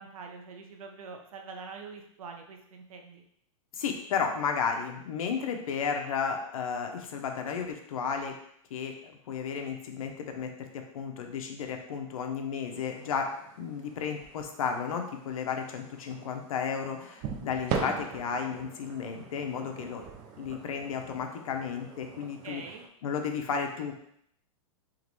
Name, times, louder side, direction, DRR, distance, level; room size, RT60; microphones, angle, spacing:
voice 1, 0.0-3.2 22.2-22.8, right 4 dB, 75° right, 3 dB, 0.8 m, -44 dB
voice 2, 3.7-8.3 8.7-13.3 13.6-20.0 20.4-22.6 23.0-24.1, left 6 dB, 75° left, 4 dB, 0.8 m, -33 dB
sound 1, 12.7-22.9, right 6 dB, 30° right, 0.4 m, -41 dB
3.8 x 3.0 x 3.1 m, 0.70 s
supercardioid pair, 155°, 18 cm